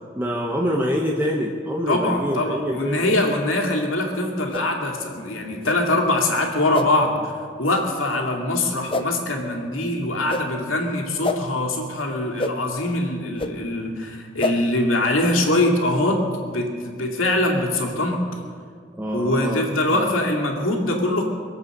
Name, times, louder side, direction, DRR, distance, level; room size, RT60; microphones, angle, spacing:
voice 1, 0.1-3.0 19.0-19.6 19.9-20.1, equal, 10° right, -1 dB, 0.9 m, -25 dB
voice 2, 1.9-18.2 19.1-21.2, left 1 dB, 90° left, 1 dB, 2.5 m, -23 dB
sound 1, 4.5-4.7 5.6-5.8 6.7-6.9 7.7-7.8 8.9-9.1 10.3-10.4 11.2-11.4 12.4-12.5 13.4-13.5 14.4-14.5, left 2 dB, 25° left, 0.6 m, -26 dB
23.5 x 8.1 x 6.6 m, 2.1 s
head